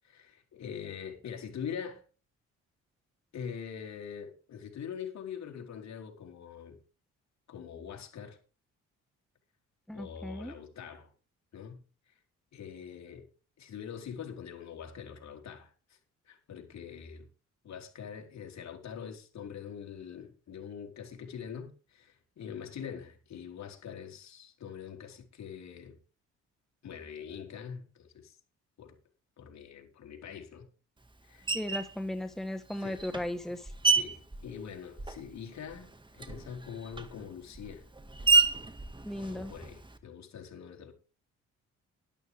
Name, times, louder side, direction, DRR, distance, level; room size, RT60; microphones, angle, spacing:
voice 1, 0.0-2.0 3.3-6.8 7.5-8.4 9.9-11.1 11.5-11.8 12.1-12.2 12.5-13.3 13.6-16.0 16.3-17.3 17.6-26.0 26.8-28.4 28.8-29.0 29.4-30.7 31.2-31.5 32.8-33.0 33.9-37.9 39.2-40.9, left 7 dB, 60° left, 4.1 m, -43 dB
voice 2, 9.9-10.5 31.5-33.7 39.0-39.5, left 1 dB, ahead, 1.2 m, -36 dB
Screech, 31.5-32.0 32.7-35.4 35.7-40.0, right 4 dB, 15° right, 1.7 m, -30 dB
12.5 x 12.0 x 3.4 m
cardioid pair, 90°, 30 cm